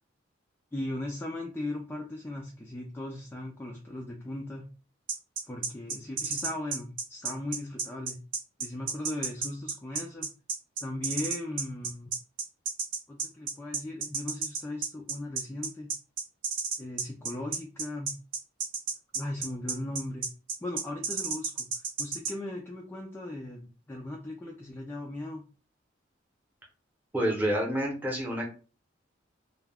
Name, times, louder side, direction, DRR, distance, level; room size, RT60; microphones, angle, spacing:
voice 1, 0.7-4.7 5.5-8.2 8.6-10.3 10.8-12.1 13.1-15.9 16.8-18.1 19.1-20.3 20.6-25.4, left 1 dB, 10° left, 0 dB, 0.3 m, -38 dB
sound 1, 5.1-22.3, right 4 dB, 80° right, 0.9 m, -32 dB
voice 2, 27.1-28.5, right 1 dB, 10° right, -2 dB, 0.8 m, -28 dB
2.3 x 2.1 x 3.3 m, 0.36 s
head